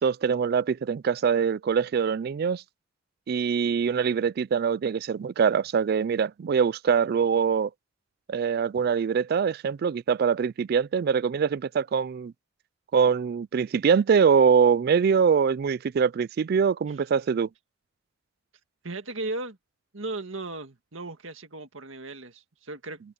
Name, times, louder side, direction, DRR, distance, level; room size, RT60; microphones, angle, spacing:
voice 1, 0.0-2.6 3.3-7.7 8.3-12.3 12.9-17.5, right 6 dB, 50° right, 0.3 m, -23 dB
voice 2, 18.8-19.6 19.9-23.0, right 2 dB, 75° right, 1.9 m, -36 dB
open air
head